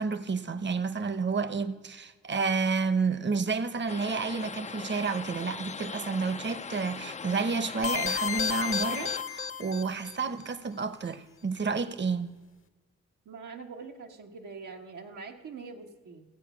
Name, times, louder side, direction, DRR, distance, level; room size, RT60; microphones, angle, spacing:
voice 1, 0.0-12.3, right 4 dB, 35° right, 0.9 m, -30 dB
sound 1, 3.9-9.2, left 5 dB, 25° left, 0.4 m, -40 dB
sound 2, 7.8-10.2, left 7 dB, 45° left, 0.8 m, -31 dB
voice 2, 13.2-16.2, right 4 dB, 85° right, 1.4 m, -44 dB
15.5 x 8.0 x 6.1 m
cardioid pair, 60°, 30 cm